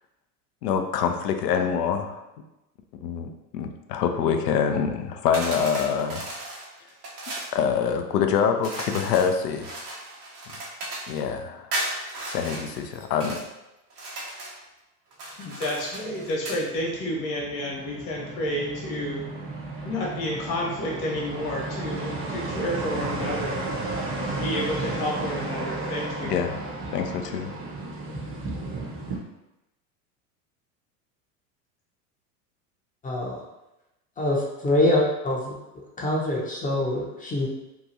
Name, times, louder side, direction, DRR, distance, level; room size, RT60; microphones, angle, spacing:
voice 1, 0.6-2.2 3.0-3.3 3.5-6.3 7.5-9.7 11.1-11.7 12.3-13.4 24.2-24.3 26.2-26.6 26.9-27.6, left 7 dB, 80° left, 6 dB, 0.5 m, -25 dB
sound 1, 5.3-7.5 8.6-11.2 11.7-13.5 13.9-14.6 15.1-16.6, right 1 dB, 80° right, 1.0 m, -35 dB
voice 2, 15.4-19.2 19.8-23.5 24.3-26.4, left 1 dB, 50° left, -3 dB, 1.2 m, -30 dB
sound 2, 15.7-29.2, right 2 dB, 30° right, 0.7 m, -33 dB
voice 3, 33.0-33.4 34.2-35.5 36.0-37.5, left 1 dB, 20° left, -3 dB, 0.6 m, -24 dB
2.9 x 2.3 x 2.7 m, 0.95 s
hypercardioid pair, 90°, 47 cm